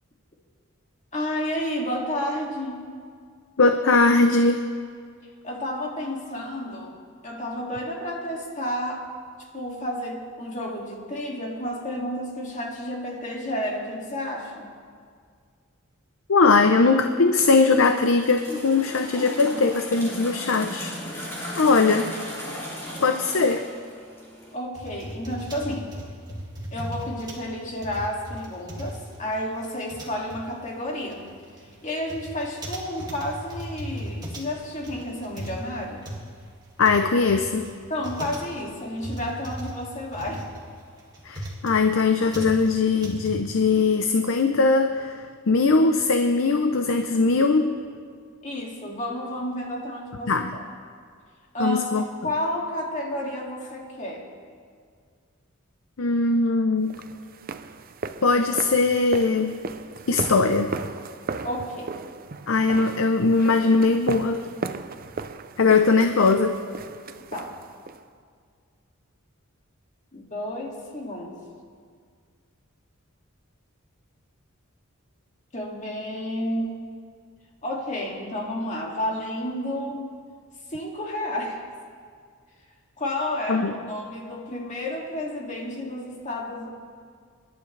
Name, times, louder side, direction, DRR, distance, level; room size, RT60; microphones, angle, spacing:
voice 1, 1.1-2.9 5.4-6.9 7.2-9.0 9.5-14.7 24.5-26.0 26.7-31.3 31.8-36.1 37.9-40.6 48.4-50.7 51.5-52.0 52.2-54.3 61.4-62.0 67.3-67.6 70.1-71.3 75.5-76.8 77.6-80.1 80.7-81.6 83.0-86.7, left 1 dB, 35° left, -1 dB, 2.2 m, -31 dB
voice 2, 3.6-4.7 16.3-22.1 23.0-23.7 36.8-37.7 41.3-47.8 50.3-50.6 51.6-52.0 56.0-57.0 58.2-59.5 60.1-60.7 62.5-64.5 65.6-66.6 83.5-83.7, left 3 dB, 65° left, 7 dB, 0.6 m, -20 dB
Spilling thick liquid, 17.4-24.5, equal, 10° left, 3.3 m, -36 dB
sound 1, 24.7-43.9, equal, 20° right, 2.3 m, -37 dB
sound 2, 56.9-68.0, right 4 dB, 45° right, 0.5 m, -36 dB
26.0 x 12.0 x 3.3 m, 2.1 s
head